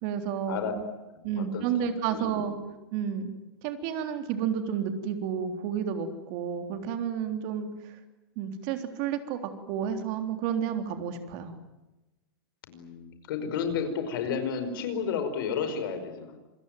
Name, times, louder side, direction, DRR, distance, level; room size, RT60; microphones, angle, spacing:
voice 1, 0.0-0.6 1.2-2.5 2.9-3.3 3.6-8.0 8.4-9.4 9.7-11.5, right 8 dB, 50° right, 7 dB, 3.6 m, -31 dB
voice 2, 1.1-2.7 12.7-16.4, left 6 dB, 65° left, 9 dB, 5.2 m, -32 dB
27.5 x 21.0 x 9.2 m, 1.0 s
hypercardioid pair, 130°, 12 cm